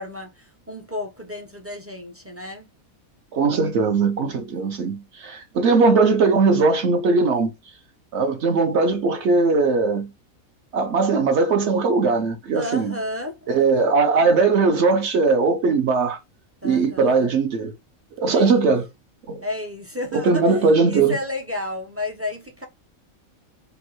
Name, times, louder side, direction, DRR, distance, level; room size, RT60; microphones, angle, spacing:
voice 1, 0.0-2.7 12.5-13.9 16.6-17.3 18.3-18.7 19.4-22.6, left 2 dB, 20° right, 0.3 m, -32 dB
voice 2, 3.3-7.5 8.1-10.1 10.7-12.9 13.5-16.2 16.6-17.7 18.2-18.9 19.3-19.4 20.1-21.2, right 4 dB, 60° right, 0.9 m, -19 dB
5.1 x 2.0 x 3.1 m
omnidirectional pair, 1.5 m